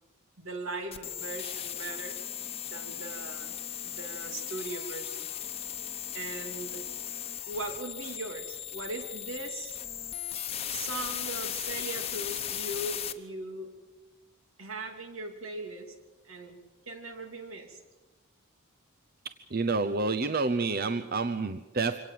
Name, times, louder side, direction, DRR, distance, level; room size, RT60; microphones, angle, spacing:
voice 1, 0.4-2.2 2.6-3.5 3.8-5.3 6.1-6.8 7.5-9.8 10.7-13.7 14.6-16.0 16.2-16.6 16.9-17.8, right 2 dB, 75° right, 5 dB, 3.0 m, -39 dB
sound 1, 0.9-13.1, left 10 dB, 30° left, 1.0 m, -37 dB
voice 2, 19.5-22.0, right 3 dB, 45° right, 10 dB, 0.7 m, -28 dB
24.5 x 17.5 x 7.7 m, 1.1 s
head